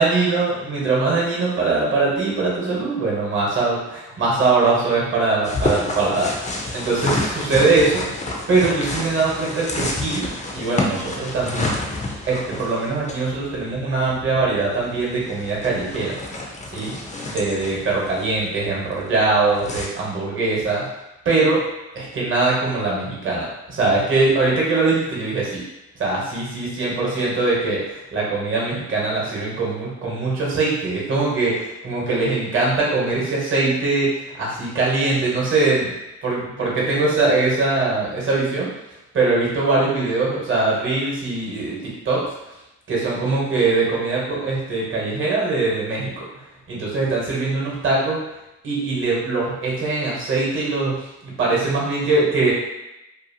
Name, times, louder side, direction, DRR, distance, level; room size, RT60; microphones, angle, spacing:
voice 1, 0.0-6.3 6.7-8.0 8.5-12.0 12.3-16.1 16.7-16.9 17.3-20.9 21.2-21.6 21.9-25.6 26.0-35.9 36.2-38.7 39.1-42.3 42.9-46.2 46.7-48.2 48.6-50.9 51.2-52.5, right 3 dB, 40° right, -4 dB, 1.1 m, -22 dB
sound 1, 5.4-19.9, left 2 dB, 25° left, 0.5 m, -29 dB
2.7 x 2.4 x 2.7 m, 0.93 s
cardioid pair, 90°, 30 cm